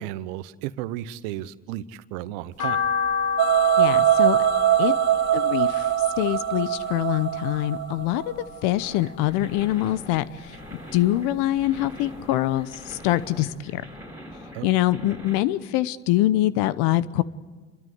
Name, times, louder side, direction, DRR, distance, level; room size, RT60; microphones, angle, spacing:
voice 1, 0.0-2.8 14.5-14.7, right 13 dB, 75° right, 17 dB, 1.0 m, -33 dB
sound 1, 2.6-8.9 9.3-10.4 10.8-12.2 12.6-12.7 13.1-13.2 13.5-13.6, left 5 dB, 50° left, 2.4 m, -30 dB
sound 2, 3.4-8.4, right 14 dB, 45° right, 0.7 m, -22 dB
voice 2, 3.8-4.4 4.8-5.0 5.3-5.9 6.2-8.2 8.6-13.8 14.6-17.2, left 15 dB, 70° left, 17 dB, 1.0 m, -24 dB
sound 3, 8.8-15.4, equal, 5° right, 4.8 m, -43 dB
30.0 x 13.0 x 7.9 m, 1.4 s
hypercardioid pair, 75°, 40 cm